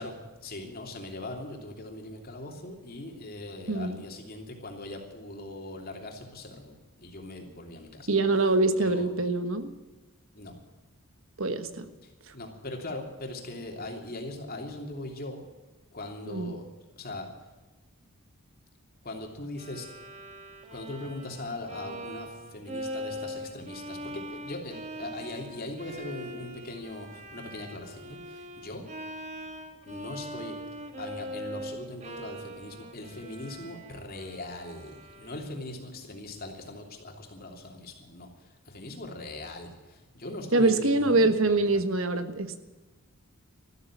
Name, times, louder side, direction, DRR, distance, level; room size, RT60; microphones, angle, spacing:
voice 1, 0.0-8.1 8.8-9.1 10.3-10.5 12.0-15.4 15.9-16.6 17.0-17.3 19.0-19.9 20.7-28.9 29.9-30.5 31.0-41.6, left 2 dB, 40° left, 2 dB, 3.0 m, -40 dB
voice 2, 8.1-9.7 11.4-11.9 16.3-16.5 40.5-42.6, right 2 dB, 60° right, 10 dB, 1.3 m, -24 dB
Bowed string instrument, 19.6-35.7, equal, 30° right, 1.6 m, -42 dB
14.0 x 13.5 x 7.5 m, 1.2 s
head